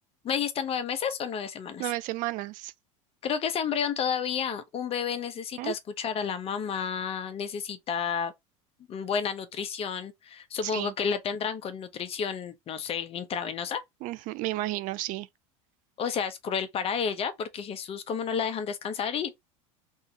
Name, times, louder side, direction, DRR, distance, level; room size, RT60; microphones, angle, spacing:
voice 1, 0.2-1.9 3.2-8.3 8.9-13.8 16.0-19.3, left 7 dB, 35° left, 0.9 m, -31 dB
voice 2, 1.8-2.7 5.6-5.7 10.6-10.9 14.0-15.3, right 17 dB, 50° right, 0.4 m, -32 dB
3.6 x 2.7 x 4.0 m
supercardioid pair, 115°, 17 cm